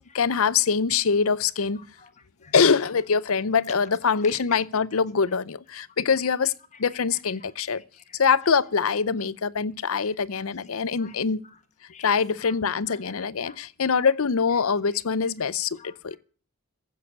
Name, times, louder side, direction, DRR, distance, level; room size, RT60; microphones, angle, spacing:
voice 1, 0.0-1.8 2.5-6.5 6.8-7.8 8.2-11.4 12.0-16.2, left 5 dB, 70° left, 0.6 m, -24 dB
voice 2, 1.8-2.1 2.4-2.5 4.2-4.4 6.7-8.2 9.9-10.0 10.3-10.4 11.0-11.1 11.4-11.6 11.9-12.6 12.9-13.6 15.8-15.9, left 6 dB, 30° left, 1.4 m, -50 dB
15.5 x 7.5 x 8.0 m
head